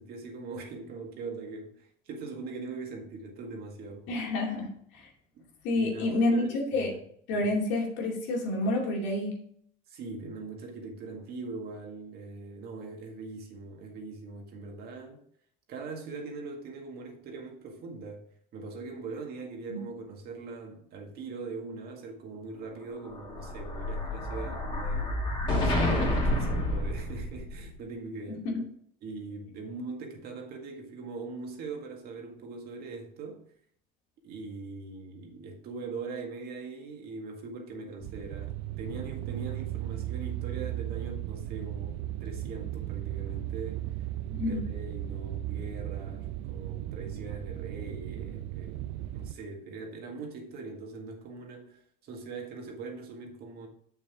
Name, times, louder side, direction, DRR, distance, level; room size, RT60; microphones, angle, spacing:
voice 1, 0.0-4.1 5.4-5.5 5.7-6.5 7.4-7.5 9.9-15.2 15.7-18.2 18.5-25.1 25.6-28.5 29.0-33.4 34.2-43.8 44.3-48.8 49.1-51.8 52.0-53.7, right 3 dB, 55° right, 1.8 m, -41 dB
voice 2, 4.1-5.1 5.6-6.9 7.3-9.4 19.7-19.8 28.3-28.6 44.3-44.6, left 2 dB, 65° left, 2.4 m, -29 dB
Explosion, 23.0-27.7, left 1 dB, 25° left, 2.6 m, -29 dB
sound 1, 38.0-49.3, right 14 dB, 80° right, 0.6 m, -36 dB
7.0 x 6.1 x 3.6 m
supercardioid pair, 115°, 20 cm